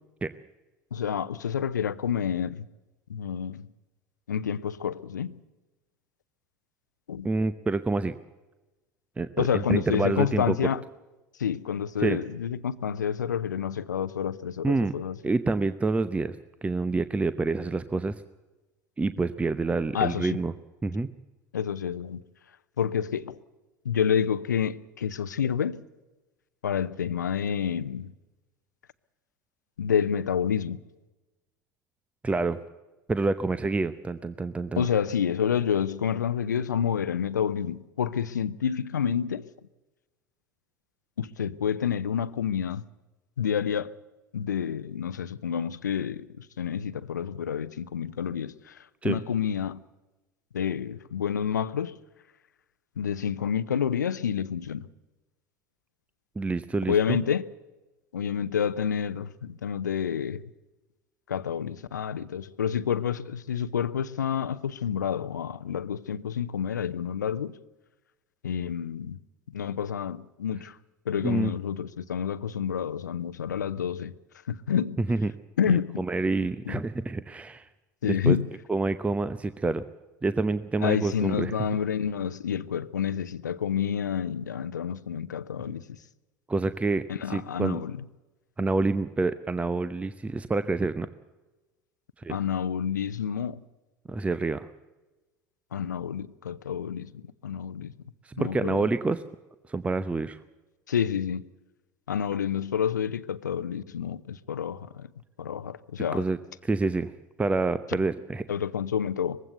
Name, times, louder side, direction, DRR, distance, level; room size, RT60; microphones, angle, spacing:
voice 1, 0.9-2.7 3.1-3.7 4.3-5.3 7.1-7.3 9.4-10.8 11.4-15.1 19.9-20.3 21.5-22.2 22.8-23.4 23.8-25.8 26.6-28.1 29.8-30.8 34.8-39.4 41.2-42.8 43.4-43.9 44.3-46.3 46.6-48.5 49.0-49.8 50.5-52.0 53.0-54.8 56.9-57.4 58.1-60.4 61.3-67.5 68.4-69.2 69.5-70.7 71.1-74.1 74.5-75.0 75.6-76.0 76.7-76.8 78.0-78.5 80.8-85.8 87.1-87.9 92.3-93.6 95.7-97.1 97.4-97.9 98.4-98.8 100.9-101.4 102.1-105.1 105.4-106.2 108.5-109.4, left 8 dB, 75° left, 0.7 m, -28 dB
voice 2, 7.2-8.2 9.2-10.6 12.0-12.2 14.6-14.9 15.2-16.4 16.6-18.2 19.0-20.5 20.8-21.1 32.2-32.6 33.1-34.9 49.0-49.2 56.4-57.2 71.2-71.5 75.0-75.3 75.7-77.7 78.1-78.4 78.7-79.8 80.2-81.7 86.5-87.8 88.6-91.1 92.2-92.4 94.1-94.7 98.2-99.2 99.7-100.4 106.1-106.4 106.6-107.1 107.4-108.4, right 3 dB, 15° right, 0.8 m, -27 dB
20.5 x 16.0 x 8.0 m
figure-of-eight pair, 70°, 10 cm